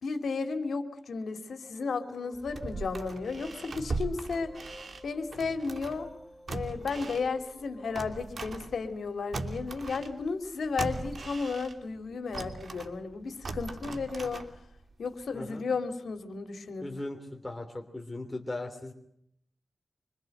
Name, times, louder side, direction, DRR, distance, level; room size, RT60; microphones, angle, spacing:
voice 1, 0.0-4.6 5.0-6.1 6.5-14.5 15.0-16.9, left 4 dB, 85° left, 8 dB, 2.7 m, -33 dB
sound 1, 1.7-8.1, equal, 5° right, 7.5 m, -53 dB
sound 2, 2.3-6.1 6.5-9.1 9.3-12.0 12.3-14.8 15.2-15.3, right 3 dB, 55° right, 2.8 m, -39 dB
voice 2, 16.8-18.9, left 2 dB, 15° left, 3 dB, 3.1 m, -38 dB
26.0 x 25.5 x 7.9 m, 0.72 s
wide cardioid pair, 100°, 0 cm